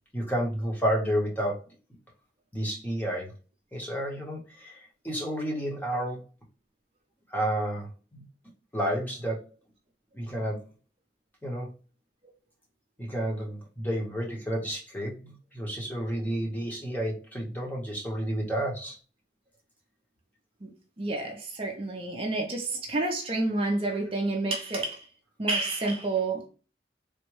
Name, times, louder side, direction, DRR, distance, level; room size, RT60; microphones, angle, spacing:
voice 1, 0.1-1.6 2.5-3.3 3.7-6.2 7.3-8.2 8.7-9.4 10.1-10.6 11.4-11.7 13.0-19.0, equal, 10° left, 0.8 m, -31 dB
voice 2, 21.0-25.1 25.4-26.5, right 2 dB, 30° right, 0.5 m, -29 dB
3.4 x 2.1 x 3.1 m
head